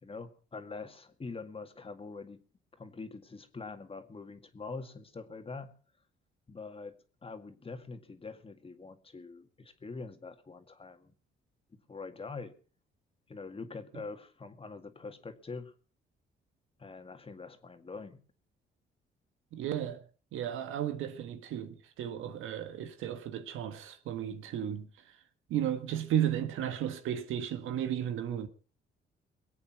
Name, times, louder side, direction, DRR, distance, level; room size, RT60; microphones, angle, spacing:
voice 1, 0.0-2.4 2.8-5.7 6.5-6.9 7.2-11.1 11.7-12.5 13.3-15.7 16.8-18.2, left 4 dB, 30° left, 2.1 m, -44 dB
voice 2, 19.5-20.0 20.3-24.9 25.5-28.5, right 10 dB, 85° right, 1.7 m, -34 dB
22.0 x 8.5 x 6.0 m
cardioid pair, 90°, 20 cm